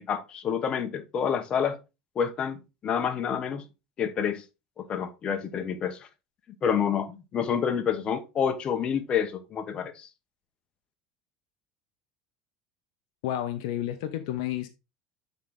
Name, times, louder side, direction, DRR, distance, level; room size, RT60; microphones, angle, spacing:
voice 1, 0.0-1.8 2.1-3.6 4.0-4.4 4.8-6.1 6.6-10.1, left 7 dB, 40° left, 1.2 m, -28 dB
voice 2, 13.2-14.7, left 12 dB, 75° left, 0.8 m, -31 dB
8.1 x 4.0 x 3.8 m
supercardioid pair, 95°, 3 cm